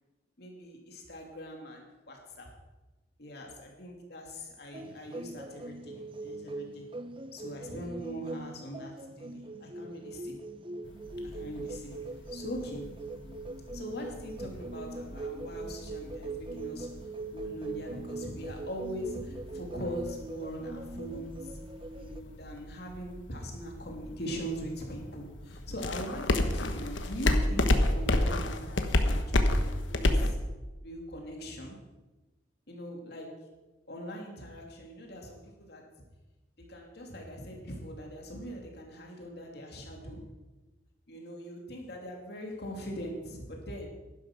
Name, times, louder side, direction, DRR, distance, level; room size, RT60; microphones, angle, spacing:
voice 1, 0.4-2.5 3.2-6.8 7.3-10.4 11.2-13.0 13.7-17.0 17.3-21.6 22.0-30.4 30.8-31.8 32.7-33.5 33.9-35.9 36.6-40.3 41.1-43.9, equal, 55° left, 1 dB, 2.8 m, -41 dB
sound 1, 4.7-22.2, right 2 dB, 25° right, 0.6 m, -41 dB
sound 2, 10.8-30.3, left 1 dB, 75° left, 1.2 m, -33 dB
11.5 x 11.5 x 6.1 m, 1.1 s
head